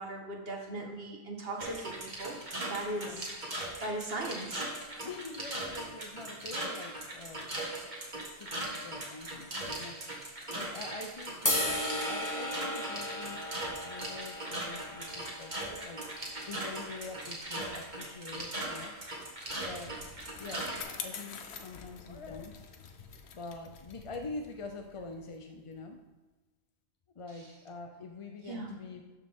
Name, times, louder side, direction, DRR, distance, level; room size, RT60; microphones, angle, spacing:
voice 1, 0.0-2.4 2.7-3.3 3.8-4.7 4.9-5.0 28.5-28.7, right 2 dB, 65° right, 0 dB, 1.7 m, -38 dB
sound 1, 1.6-20.8, right 1 dB, 45° right, 1.8 m, -39 dB
voice 2, 5.0-7.5 8.1-13.5 13.8-18.9 19.6-20.0 20.4-22.6 23.3-26.0 27.2-29.0, left 3 dB, 40° left, 4 dB, 0.5 m, -45 dB
sound 2, 11.4-17.7, left 1 dB, 15° left, 1.2 m, -36 dB
Bicycle, 19.2-25.9, left 6 dB, 80° left, 1.1 m, -47 dB
12.5 x 5.3 x 3.6 m, 1.2 s
omnidirectional pair, 1.1 m